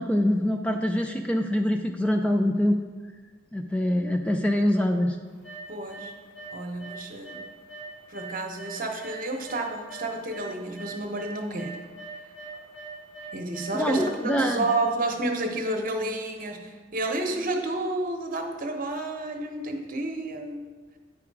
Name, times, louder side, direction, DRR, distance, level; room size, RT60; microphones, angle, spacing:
voice 1, 0.0-2.8 3.5-5.2 13.7-14.6, equal, 5° left, 4 dB, 0.4 m, -24 dB
sound 1, 5.4-6.1 6.3-7.0 7.2-10.5 10.7-14.8, right 3 dB, 65° left, 2.3 m, -41 dB
voice 2, 5.7-6.1 6.5-7.4 8.1-11.8 13.3-20.6, right 2 dB, 45° right, 3 dB, 1.0 m, -30 dB
9.7 x 4.9 x 4.7 m, 1.4 s
head